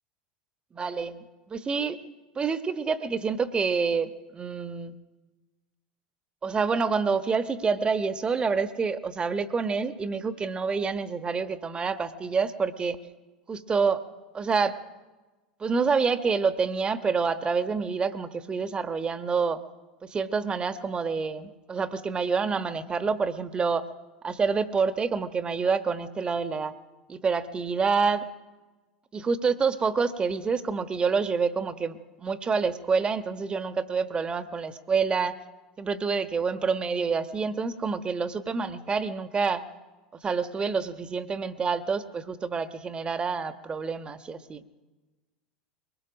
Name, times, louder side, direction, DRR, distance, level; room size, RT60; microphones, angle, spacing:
voice 1, 0.7-1.2 1.5-2.0 2.3-4.9 6.4-13.0 13.5-14.0 14.3-14.7 15.6-19.6 20.0-23.8 24.2-26.7 27.1-28.2 29.1-35.3 35.8-39.6 40.2-44.6, right 5 dB, 25° right, 11 dB, 1.3 m, -27 dB
22.5 x 20.0 x 6.3 m, 1.2 s
figure-of-eight pair, 80°, 4 cm